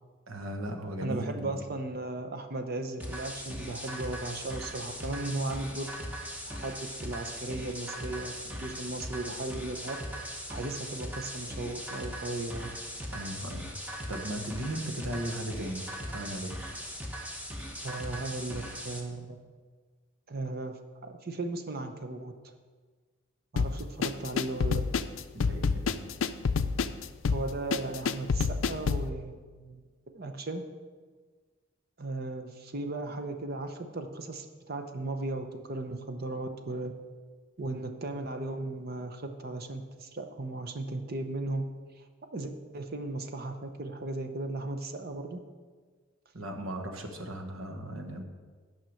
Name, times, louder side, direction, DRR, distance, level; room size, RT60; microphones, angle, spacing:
voice 1, 0.3-1.6 13.1-13.7 14.1-16.6 25.3-26.1 46.3-48.2, right 1 dB, 85° right, 5 dB, 1.2 m, -37 dB
voice 2, 1.0-5.9 6.5-12.7 17.8-19.4 20.3-22.3 23.5-24.8 27.3-29.9 30.1-30.6 32.0-36.9 37.6-41.7 42.0-42.1 42.3-45.4, right 2 dB, 50° right, 7 dB, 0.7 m, -36 dB
sound 1, 3.0-19.0, equal, 10° right, 0.9 m, -39 dB
sound 2, 23.6-29.1, left 5 dB, 70° left, 0.4 m, -28 dB
9.2 x 5.7 x 6.4 m, 1.5 s
head